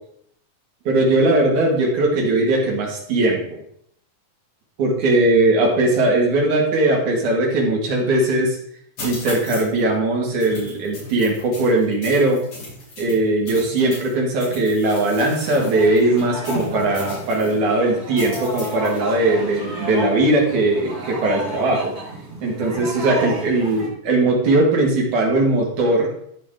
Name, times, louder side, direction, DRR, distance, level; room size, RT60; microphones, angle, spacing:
voice 1, 0.9-3.4 4.8-8.6 9.0-12.4 13.0-21.9 22.4-26.1, right 2 dB, 75° right, -1 dB, 3.5 m, -19 dB
sound 1, 9.0-9.8 10.4-14.1 14.4-17.6 18.2-19.0, left 2 dB, 60° left, 4.7 m, -37 dB
sound 2, 15.4-23.9, right 1 dB, 30° right, 2.9 m, -33 dB
13.5 x 5.0 x 3.8 m, 0.69 s
omnidirectional pair, 3.5 m